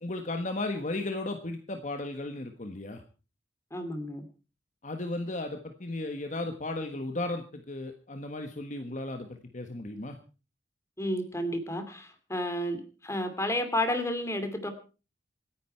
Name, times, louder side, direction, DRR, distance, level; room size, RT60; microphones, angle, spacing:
voice 1, 0.0-3.0 4.8-10.2, left 2 dB, 40° left, 6 dB, 1.4 m, -35 dB
voice 2, 3.7-4.3 11.0-14.7, left 1 dB, 15° left, 8 dB, 2.6 m, -31 dB
26.0 x 10.5 x 4.5 m, 0.36 s
head